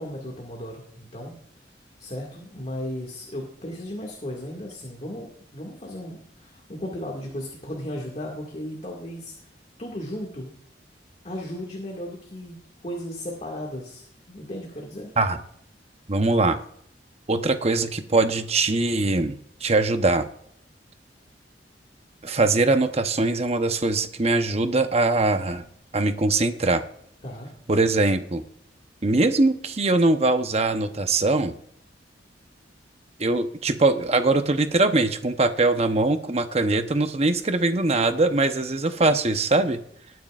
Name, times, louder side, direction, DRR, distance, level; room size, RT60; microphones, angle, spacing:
voice 1, 0.0-1.4 2.0-10.5 11.2-15.1 27.2-27.5, left 1 dB, 40° left, -1 dB, 2.0 m, -35 dB
voice 2, 16.1-16.6 17.3-20.3 22.2-25.6 25.9-26.8 27.7-28.4 29.0-31.5 33.2-39.8, right 2 dB, 35° right, 8 dB, 0.9 m, -22 dB
19.5 x 9.4 x 2.5 m, 0.70 s
head